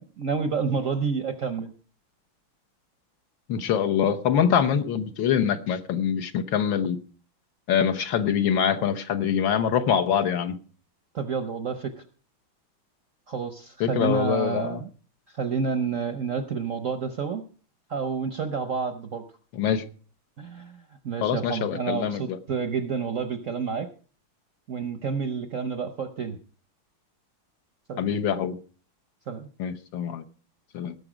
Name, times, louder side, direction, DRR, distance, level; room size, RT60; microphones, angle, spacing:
voice 1, 0.0-1.7 11.1-12.0 13.3-14.9 15.3-17.4 17.9-19.2 20.4-23.9 24.7-26.4 27.9-28.0 29.3-29.5, right 5 dB, 55° right, 9 dB, 0.9 m, -29 dB
voice 2, 3.5-7.0 7.7-10.6 13.8-14.8 19.5-19.8 21.2-22.4 28.0-28.6 29.6-30.2 30.7-30.9, left 8 dB, 70° left, 7 dB, 1.7 m, -24 dB
18.0 x 6.9 x 5.0 m, 0.40 s
omnidirectional pair, 2.3 m